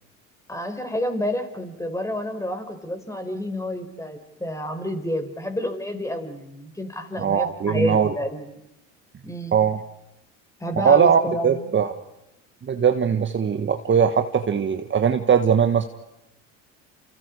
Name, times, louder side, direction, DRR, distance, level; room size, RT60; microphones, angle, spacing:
voice 1, 0.5-8.4 9.2-9.6 10.6-11.7, equal, 10° left, 6 dB, 5.2 m, -29 dB
voice 2, 7.2-8.1 9.5-9.8 10.8-11.9 12.6-15.8, right 7 dB, 30° right, 7 dB, 1.6 m, -20 dB
29.5 x 29.0 x 5.0 m, 0.89 s
hypercardioid pair, 80°, 38 cm